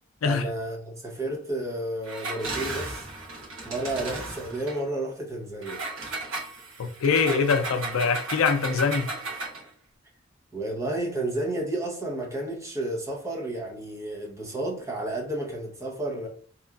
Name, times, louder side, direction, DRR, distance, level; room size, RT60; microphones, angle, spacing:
voice 1, 0.2-3.1 3.6-5.9 10.5-16.3, right 1 dB, 15° right, 0.7 m, -31 dB
Engine, 2.0-4.8 5.6-9.7, right 2 dB, 70° right, 1.0 m, -35 dB
voice 2, 6.8-9.1, left 5 dB, 85° left, 0.4 m, -24 dB
2.9 x 2.3 x 2.3 m
head